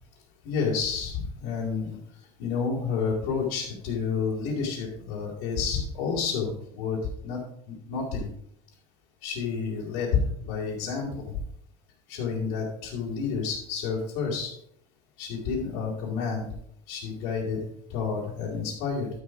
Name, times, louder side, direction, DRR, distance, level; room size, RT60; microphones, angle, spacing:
voice 1, 0.4-2.0 2.4-7.0 7.2-7.4 7.7-8.3 9.2-11.3 12.1-14.5 15.2-16.5 16.9-19.1, left 5 dB, 80° left, -7 dB, 4.0 m, -30 dB
12.5 x 6.4 x 4.9 m, 0.68 s
cardioid pair, 160°, 15 cm